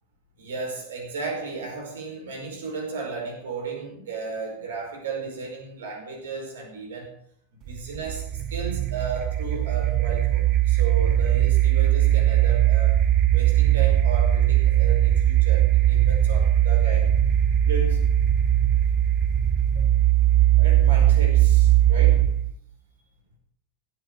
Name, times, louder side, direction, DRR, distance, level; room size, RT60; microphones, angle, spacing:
voice 1, 0.4-7.1 7.6-13.0 13.3-17.1 17.6-18.1 19.7-19.8 20.6-22.2, right 4 dB, 60° right, 2 dB, 5.0 m, -34 dB
sound 1, 7.7-22.6, right 12 dB, 35° right, 0.7 m, -20 dB
16.0 x 9.1 x 6.6 m, 0.64 s
figure-of-eight pair, 90°, 0 cm